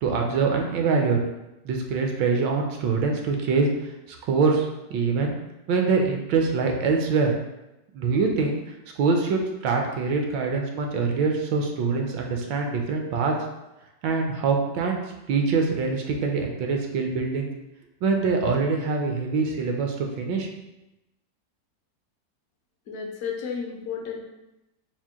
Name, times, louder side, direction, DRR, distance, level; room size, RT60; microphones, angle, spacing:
voice 1, 0.0-1.2 1.6-3.7 4.3-5.3 5.7-7.3 7.9-8.6 9.0-13.4 14.0-15.0 15.3-17.5 18.0-20.5, right 4 dB, 75° right, 2 dB, 1.2 m, -24 dB
voice 2, 22.9-24.2, left 6 dB, 70° left, 0 dB, 0.7 m, -32 dB
4.4 x 2.1 x 3.5 m, 0.96 s
omnidirectional pair, 2.0 m